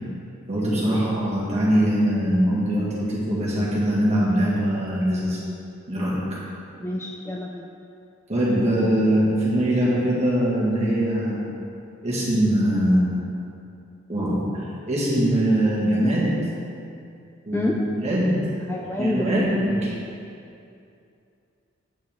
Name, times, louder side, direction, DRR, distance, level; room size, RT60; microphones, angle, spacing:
voice 1, 0.5-5.4 5.9-6.4 8.3-11.4 12.0-13.1 14.1-14.4 14.9-16.4 17.5-17.7 18.0-18.4 19.0-19.9, right 1 dB, 30° right, -7 dB, 1.8 m, -22 dB
voice 2, 6.8-7.6 17.5-17.8 18.7-19.4, left 1 dB, 10° left, 0 dB, 0.3 m, -27 dB
9.0 x 5.7 x 3.5 m, 2.6 s
head